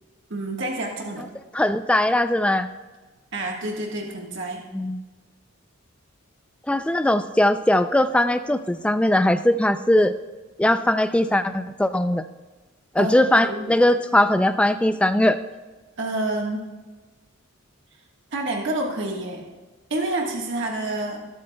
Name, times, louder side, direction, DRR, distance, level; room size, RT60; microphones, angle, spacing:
voice 1, 0.3-1.3 3.3-4.6 13.0-13.7 16.0-16.6 18.3-19.4 19.9-21.2, right 2 dB, 60° right, 0 dB, 1.4 m, -28 dB
voice 2, 1.5-2.7 4.7-5.0 6.7-10.1 10.6-12.2 12.9-15.4, left 1 dB, 5° left, 11 dB, 0.3 m, -20 dB
20.0 x 8.5 x 2.2 m, 1.2 s
head